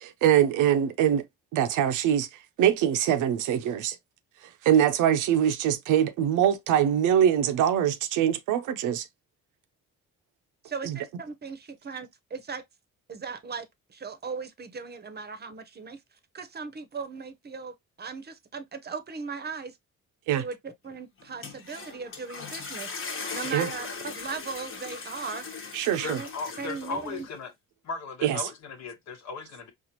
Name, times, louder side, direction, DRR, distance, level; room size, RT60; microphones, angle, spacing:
voice 1, 0.0-1.2 1.5-2.3 2.6-4.0 4.6-9.0 10.8-11.0 20.3-20.4 23.5-23.7 25.7-26.2 28.2-28.4, right 10 dB, 85° right, 0.6 m, -23 dB
voice 2, 10.6-12.6 13.1-16.0 16.3-19.8 20.4-23.0 23.3-25.5 26.0-26.3 26.6-27.3, right 5 dB, 35° right, 0.7 m, -38 dB
sound 1, 21.2-27.3, left 4 dB, 45° left, 1.1 m, -39 dB
voice 3, 25.9-27.5 27.8-29.7, left 4 dB, 65° left, 1.2 m, -37 dB
4.2 x 2.4 x 2.8 m
cardioid pair, 90°, 30 cm